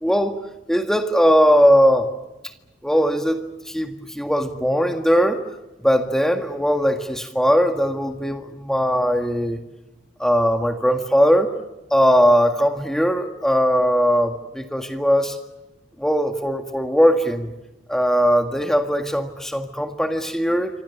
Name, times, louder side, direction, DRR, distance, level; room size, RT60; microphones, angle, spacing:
voice 1, 0.0-0.4 0.7-2.1 2.8-5.4 5.8-9.6 10.2-11.5 11.9-15.4 16.0-17.5 17.9-20.7, equal, 5° left, 5 dB, 1.7 m, -19 dB
27.5 x 25.5 x 7.0 m, 1.0 s
head